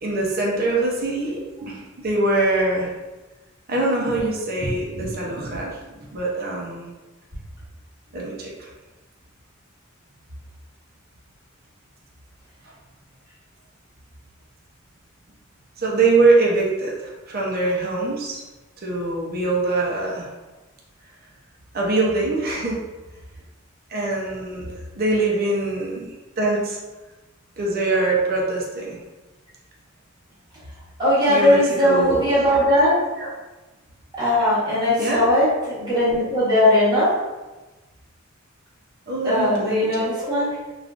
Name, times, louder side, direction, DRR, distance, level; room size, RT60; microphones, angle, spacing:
voice 1, 0.0-2.9 3.7-6.9 8.1-8.7 15.8-18.4 18.8-20.3 21.7-22.8 23.9-26.0 26.4-26.8 27.6-29.0 31.3-32.3 33.2-33.3 35.0-35.2 39.1-40.1, right 2 dB, 45° right, -3 dB, 0.7 m, -23 dB
voice 2, 31.0-32.9 34.1-37.1 39.2-40.6, left 1 dB, 20° right, -9 dB, 1.1 m, -19 dB
3.5 x 2.5 x 2.4 m, 1.1 s
head